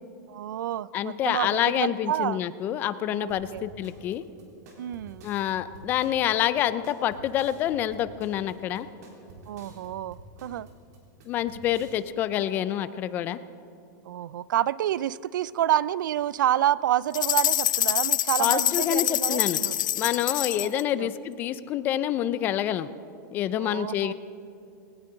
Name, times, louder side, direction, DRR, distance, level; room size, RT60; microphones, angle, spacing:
voice 1, 0.3-2.4 3.1-3.6 4.8-5.3 9.5-10.7 14.1-19.8 20.7-21.1 23.6-24.1, right 12 dB, 80° right, 20 dB, 0.4 m, -28 dB
voice 2, 0.9-4.2 5.2-8.9 11.3-13.4 18.4-19.6 20.0-22.9 23.3-24.1, left 11 dB, 20° left, 15 dB, 0.3 m, -27 dB
sound 1, 3.3-12.0, right 2 dB, 60° right, 3.8 m, -49 dB
sound 2, 17.1-20.8, left 13 dB, 85° left, 0.4 m, -26 dB
20.0 x 18.5 x 3.8 m, 2.7 s
supercardioid pair, 175°, 10 cm